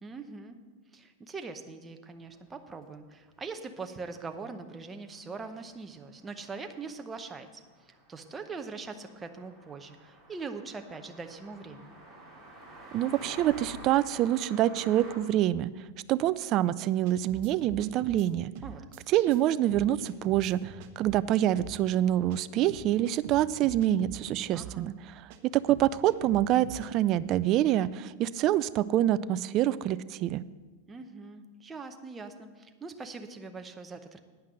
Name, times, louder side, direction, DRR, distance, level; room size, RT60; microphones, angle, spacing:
voice 1, 0.0-0.6 0.9-12.0 18.6-18.8 24.5-25.0 30.9-34.2, right 4 dB, 15° right, 6 dB, 0.8 m, -42 dB
sound 1, 2.3-2.4 2.8-2.9 5.4-5.6 5.9-6.0 6.3-15.2, right 1 dB, 5° left, 3.1 m, -49 dB
voice 2, 12.9-15.7 16.1-18.5 19.1-20.6 21.0-24.9 25.5-30.4, right 13 dB, 40° right, 16 dB, 0.3 m, -26 dB
sound 2, 17.0-18.3 18.5-19.4 19.7-21.2 21.5-21.7 22.3-22.4 22.7-24.2 24.5-24.8 25.3-25.4 25.7-26.9, right 9 dB, 55° right, 1.0 m, -44 dB
9.8 x 5.7 x 7.7 m, 1.3 s
supercardioid pair, 140°, 0 cm